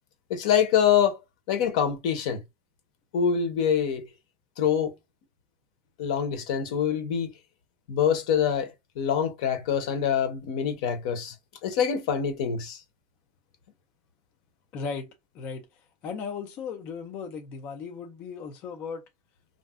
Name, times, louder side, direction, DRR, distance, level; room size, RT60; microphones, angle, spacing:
voice 1, 0.3-1.2 1.5-2.4 3.1-4.0 4.6-4.9 6.0-7.3 7.9-11.3 11.6-12.8, left 8 dB, 75° left, 0.8 m, -25 dB
voice 2, 14.7-15.7 16.0-19.0, left 5 dB, 35° left, 0.5 m, -36 dB
2.6 x 2.1 x 3.5 m
cardioid pair, 180°, 4 cm